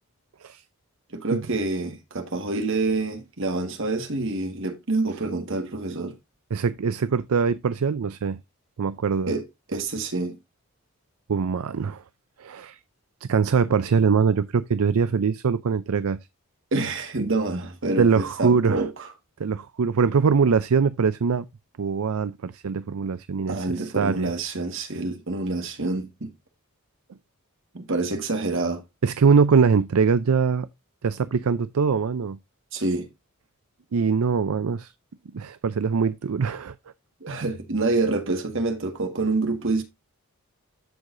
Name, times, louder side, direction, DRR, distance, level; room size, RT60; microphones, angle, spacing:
voice 1, 1.1-6.1 9.3-10.4 16.7-19.1 23.5-26.3 27.7-28.8 32.7-33.1 37.2-39.8, right 3 dB, 60° right, 1.6 m, -27 dB
voice 2, 6.5-8.4 8.8-9.3 11.3-12.0 12.4-12.8 13.2-16.2 18.0-18.8 19.4-21.4 21.8-24.3 29.0-30.7 31.0-32.4 33.9-34.9 35.3-36.7, right 5 dB, 75° right, 0.5 m, -22 dB
14.0 x 4.8 x 2.6 m
head